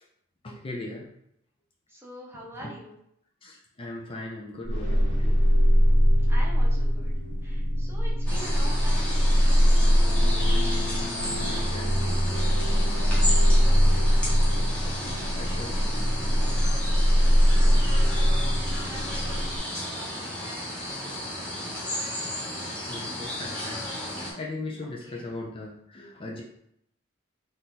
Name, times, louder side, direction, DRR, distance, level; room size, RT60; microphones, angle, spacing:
voice 1, 0.4-1.1 2.6-2.7 3.4-5.4 11.4-12.0 15.3-16.4 22.9-26.4, left 2 dB, 25° left, -2 dB, 0.5 m, -39 dB
voice 2, 1.9-3.0 6.3-7.1 7.4-10.6 12.9-14.4 17.6-21.9 24.8-25.2, equal, 10° right, -4 dB, 0.9 m, -46 dB
sound 1, 4.6-19.6, equal, 65° left, 1.1 m, -22 dB
sound 2, 8.3-24.3, left 1 dB, 5° left, 1.3 m, -34 dB
4.2 x 2.5 x 3.9 m, 0.75 s
head